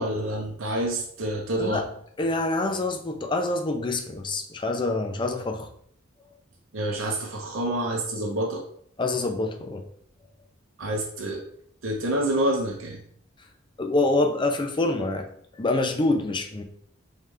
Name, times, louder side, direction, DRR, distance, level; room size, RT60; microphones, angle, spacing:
voice 1, 0.0-1.8 6.7-8.6 10.8-11.4 11.8-13.0, right 1 dB, 80° right, 0 dB, 0.7 m, -27 dB
voice 2, 2.2-5.7 9.0-9.8 13.8-15.3 15.6-16.6, left 2 dB, 25° left, 4 dB, 0.5 m, -26 dB
3.7 x 3.5 x 3.2 m, 0.65 s
head